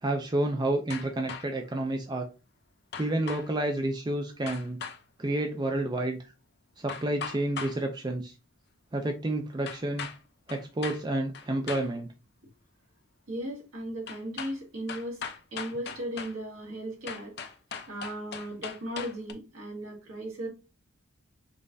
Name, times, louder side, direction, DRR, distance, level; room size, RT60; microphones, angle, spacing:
voice 1, 0.0-2.3 3.0-4.8 5.2-6.2 6.8-8.3 8.9-10.1 10.5-12.1, right 1 dB, 20° right, 4 dB, 0.4 m, -30 dB
sound 1, 0.9-1.7 2.9-3.5 4.5-5.0 6.9-7.8 9.6-10.2 10.5-11.0 11.3-11.9 14.1-14.6 14.9-16.4 17.1-19.3, left 6 dB, 50° left, 0.6 m, -39 dB
voice 2, 13.3-15.2 15.5-17.3 17.9-20.5, right 1 dB, 70° right, -2 dB, 2.0 m, -36 dB
5.3 x 3.3 x 2.6 m, 0.30 s
head